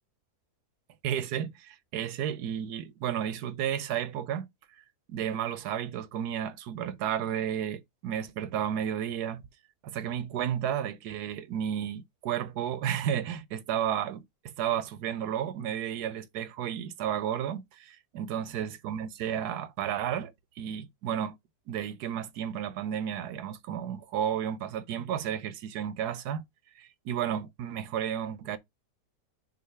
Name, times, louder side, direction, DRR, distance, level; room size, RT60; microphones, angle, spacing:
voice 1, 1.0-4.5 5.1-9.4 9.8-20.3 20.6-21.4 21.7-26.4 26.8-28.6, right 9 dB, 80° right, 1.3 m, -32 dB
6.6 x 2.7 x 5.5 m
omnidirectional pair, 1.7 m